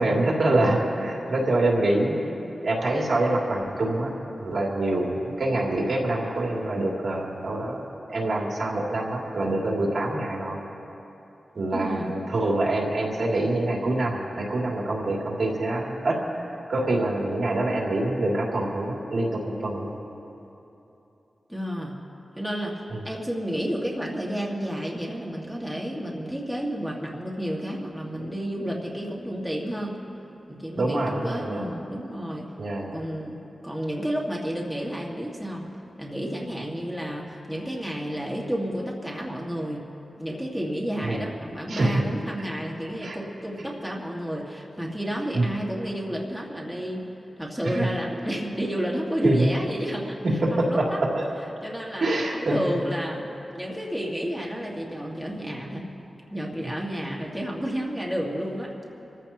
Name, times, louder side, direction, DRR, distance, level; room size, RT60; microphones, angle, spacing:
voice 1, 0.0-2.3 2.6-4.1 4.4-7.8 8.1-10.6 11.5-19.9 22.9-23.0 30.7-31.6 32.6-33.0 41.0-41.2 41.7-42.0 43.0-43.2 45.3-45.5 47.7-47.9 49.2-49.4 50.2-51.3 52.0-52.7, right 2 dB, 60° right, -3 dB, 2.9 m, -25 dB
voice 2, 11.7-12.1 21.5-22.0 22.4-30.0 30.5-32.5 32.9-35.7 36.0-39.9 40.2-47.0 47.4-51.0 51.6-55.9 56.3-58.7, equal, ahead, -3 dB, 2.0 m, -31 dB
27.0 x 14.5 x 3.0 m, 3.0 s
wide cardioid pair, 85°, 0 cm